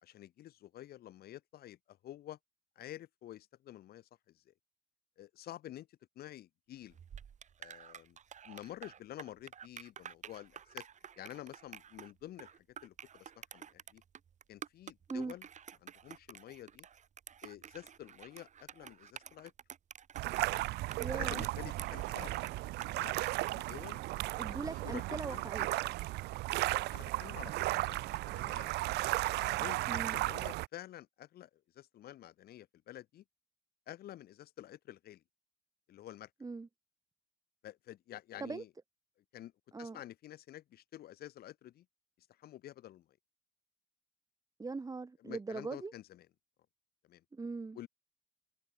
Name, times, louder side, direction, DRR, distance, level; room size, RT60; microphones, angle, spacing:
voice 1, 0.0-2.4 2.7-4.1 4.3-4.5 5.2-7.0 7.6-8.2 8.4-10.9 11.2-14.0 14.5-15.5 15.8-16.9 17.4-19.5 21.1-24.0 24.5-24.6 24.8-25.0 25.3-25.4 26.7-28.7 29.3-33.2 33.9-35.2 35.9-36.3 37.6-38.7 39.3-39.5 39.8-41.8 42.4-43.1 45.2-46.3 47.0-47.2 47.7-47.9, left 13 dB, 65° left, 3.3 m, -50 dB
sound 1, 6.9-24.6, right 8 dB, 45° right, 6.7 m, -51 dB
sound 2, 20.2-30.7, right 19 dB, 85° right, 1.1 m, -35 dB
voice 2, 21.0-21.4 24.4-25.7 29.9-30.2 36.4-36.7 38.4-38.6 39.7-40.0 44.6-45.9 47.3-47.8, right 4 dB, 20° right, 2.5 m, -40 dB
cardioid pair, 110°, 17 cm